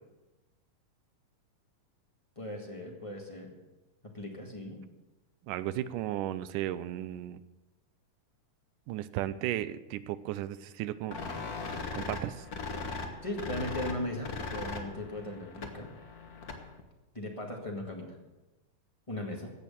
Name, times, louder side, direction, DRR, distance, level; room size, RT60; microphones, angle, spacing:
voice 1, 2.3-3.5 4.1-4.8 13.2-15.9 17.1-18.1 19.1-19.5, left 1 dB, 15° left, 0 dB, 1.2 m, -38 dB
voice 2, 5.4-7.4 8.9-11.2 11.9-12.5, right 13 dB, 80° right, 14 dB, 2.1 m, -35 dB
sound 1, 11.1-16.8, left 3 dB, 60° left, 0.9 m, -39 dB
16.5 x 6.4 x 8.9 m, 1.1 s
omnidirectional pair, 3.9 m